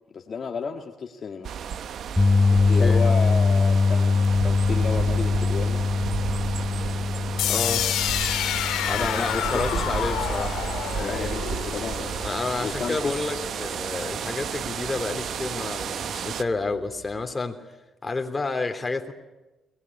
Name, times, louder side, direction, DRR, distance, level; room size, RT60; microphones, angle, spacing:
voice 1, 0.1-1.5 2.6-5.8 8.9-9.9 11.0-12.2 12.6-13.2, left 5 dB, 50° left, 3 dB, 1.8 m, -32 dB
sound 1, 1.4-16.4, right 8 dB, 65° right, 1.0 m, -32 dB
sound 2, 2.2-14.4 14.8-15.0 17.2-17.3, left 4 dB, 5° left, 3.7 m, -24 dB
voice 2, 2.5-3.0 7.4-7.9 8.9-10.6 10.9-11.4 12.2-17.6 18.0-19.1, left 3 dB, 25° left, 5 dB, 3.3 m, -30 dB
sound 3, 7.4-13.3, left 11 dB, 85° left, 1.9 m, -29 dB
23.0 x 19.5 x 9.9 m, 1.1 s
cardioid pair, 75°, 0 cm